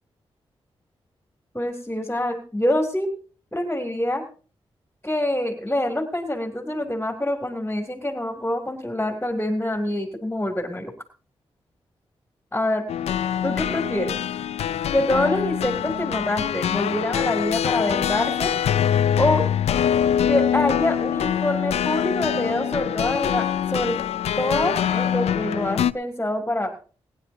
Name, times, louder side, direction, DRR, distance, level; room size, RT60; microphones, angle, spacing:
voice 1, 1.5-3.1 3.5-4.2 5.0-10.9 12.5-12.8 13.4-14.1 14.9-18.5 19.2-19.4 20.3-24.0 24.4-26.7, left 1 dB, 15° left, 4 dB, 2.8 m, -25 dB
sound 1, 12.9-25.9, left 9 dB, 85° left, 0.5 m, -24 dB
24.0 x 9.8 x 2.8 m, 0.38 s
cardioid pair, 50°, 11 cm